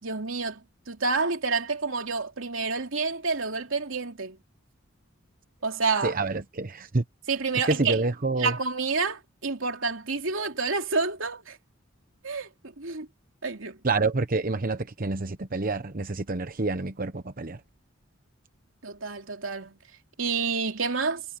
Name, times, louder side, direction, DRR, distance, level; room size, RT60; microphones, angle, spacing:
voice 1, 0.0-0.6 0.9-4.4 5.6-6.1 7.3-8.0 8.4-11.6 12.2-13.1 13.4-13.8 18.8-19.7 20.2-21.2, right 4 dB, 85° right, 2.9 m, -29 dB
voice 2, 6.0-7.0 7.5-8.6 13.8-17.6, right 3 dB, 45° right, 0.9 m, -28 dB
head